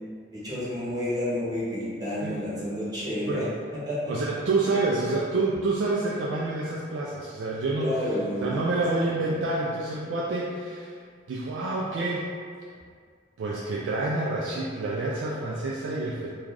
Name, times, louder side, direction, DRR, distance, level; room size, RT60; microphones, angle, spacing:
voice 1, 0.3-3.4 3.8-4.1 7.8-8.5, left 1 dB, 20° right, -9 dB, 0.7 m, -30 dB
voice 2, 4.1-7.9 8.4-10.9 11.3-12.3 13.4-16.3, right 2 dB, 80° right, -5 dB, 0.3 m, -28 dB
2.4 x 2.3 x 3.2 m, 2.1 s
head